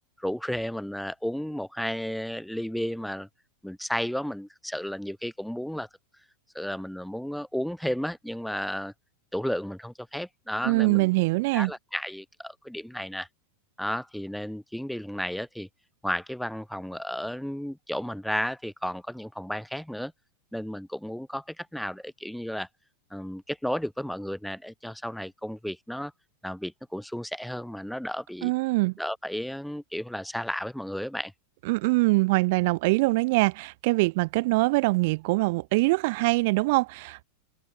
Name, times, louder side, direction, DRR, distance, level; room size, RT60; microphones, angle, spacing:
voice 1, 0.2-3.3 3.6-5.9 6.5-8.9 9.3-11.1 11.5-13.3 13.8-15.7 16.0-20.1 20.5-22.7 23.1-26.1 26.4-28.5 29.0-31.3, equal, ahead, 6.2 m, -33 dB
voice 2, 10.6-11.7 28.4-28.9 31.7-37.2, right 24 dB, 50° right, 4.3 m, -23 dB
figure-of-eight pair, 90°, 0 cm